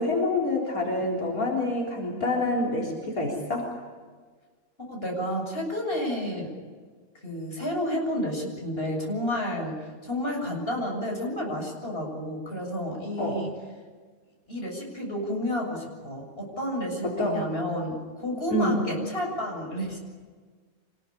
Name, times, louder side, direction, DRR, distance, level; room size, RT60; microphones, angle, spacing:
voice 1, 0.0-3.7 13.2-13.4 17.0-17.4 18.5-18.8, left 1 dB, 80° left, 0 dB, 4.5 m, -27 dB
voice 2, 4.9-6.5 7.2-13.5 14.5-20.0, left 1 dB, 40° left, 0 dB, 7.6 m, -31 dB
26.5 x 21.0 x 9.9 m, 1.5 s
omnidirectional pair, 1.5 m